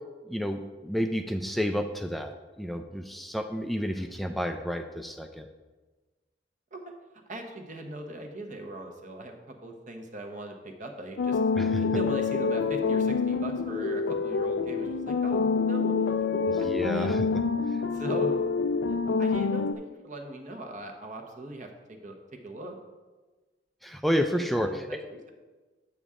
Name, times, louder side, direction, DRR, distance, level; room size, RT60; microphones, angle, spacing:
voice 1, 0.3-5.5 11.6-12.0 16.5-17.2 17.7-17.8 23.8-24.9, equal, ahead, 5 dB, 0.4 m, -30 dB
voice 2, 7.3-11.4 11.7-16.7 16.9-17.1 17.9-18.4 18.9-22.8 24.4-25.2, right 1 dB, 45° right, 4 dB, 1.0 m, -40 dB
sound 1, 11.2-19.7, left 4 dB, 80° left, 0.4 m, -27 dB
8.5 x 7.0 x 3.6 m, 1.3 s
head